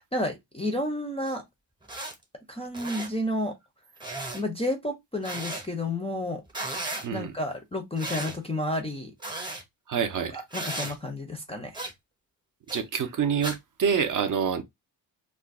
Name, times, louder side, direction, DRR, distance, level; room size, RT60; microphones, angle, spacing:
voice 1, 0.1-1.4 2.5-3.5 4.3-6.4 7.1-9.1 10.3-11.8, left 1 dB, 15° left, 0.4 m, -31 dB
sound 1, 1.3-1.4 1.8-2.1 2.7-3.1 4.0-4.4 5.2-5.6 6.5-7.1 8.0-8.4 9.2-9.6 10.5-11.0 11.7-11.9 12.7-12.8 13.4-13.6, right 2 dB, 10° right, 0.7 m, -35 dB
voice 2, 9.9-10.4 12.7-14.6, right 7 dB, 45° right, 0.5 m, -27 dB
2.4 x 2.3 x 3.5 m
wide cardioid pair, 165°, 46 cm